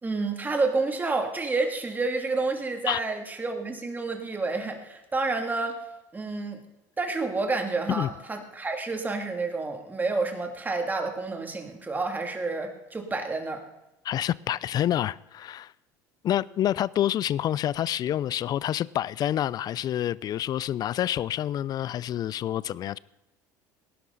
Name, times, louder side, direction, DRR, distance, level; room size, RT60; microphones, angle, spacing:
voice 1, 0.0-5.8 6.1-6.6 7.0-13.6, right 3 dB, 20° right, 2.7 m, -29 dB
voice 2, 14.0-15.7 16.2-23.0, left 11 dB, 45° left, 0.5 m, -28 dB
18.5 x 11.0 x 4.1 m
supercardioid pair, 95°, 9 cm